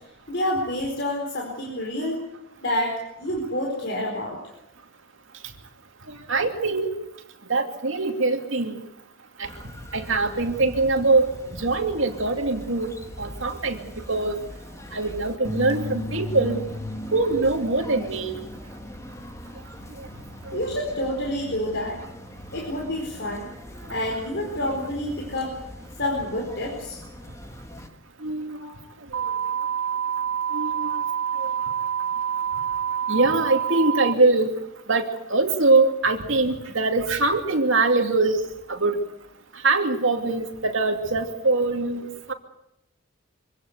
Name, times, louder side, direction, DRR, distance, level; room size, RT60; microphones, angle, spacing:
voice 1, 0.3-2.2 2.6-4.4 20.5-22.0 22.5-23.5 23.9-25.6 26.0-27.0, left 1 dB, 55° left, 0 dB, 4.5 m, -28 dB
voice 2, 6.3-6.9 7.5-8.8 9.4-9.5 9.9-12.9 13.2-14.4 14.9-16.6 17.1-18.3 20.0-20.1 20.5-20.6 28.2-28.7 29.2-29.4 30.5-31.0 31.4-31.5 33.1-34.5 34.9-38.4 38.7-39.0 39.6-42.3, right 3 dB, 65° right, 4 dB, 2.7 m, -23 dB
sound 1, 9.4-27.9, left 2 dB, 15° left, 1.6 m, -39 dB
sound 2, 29.1-34.1, right 8 dB, 80° right, 1.1 m, -27 dB
25.0 x 17.0 x 8.2 m, 0.85 s
head